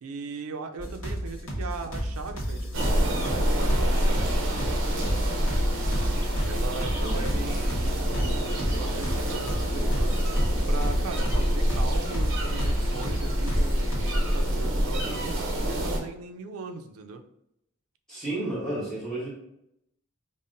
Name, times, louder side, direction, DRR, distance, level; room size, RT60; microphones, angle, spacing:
voice 1, 0.0-5.2 5.9-6.2 6.4-10.2 10.7-17.2, right 4 dB, 80° right, 7 dB, 0.4 m, -39 dB
sound 1, 0.8-14.0, equal, 75° left, 1.2 m, -32 dB
sound 2, 2.7-16.0, equal, 60° right, 0.8 m, -26 dB
sound 3, 4.6-14.4, left 3 dB, 40° left, 0.4 m, -44 dB
voice 2, 7.0-7.4 18.1-19.3, right 1 dB, ahead, -8 dB, 1.1 m, -32 dB
5.3 x 2.1 x 2.6 m, 0.79 s
head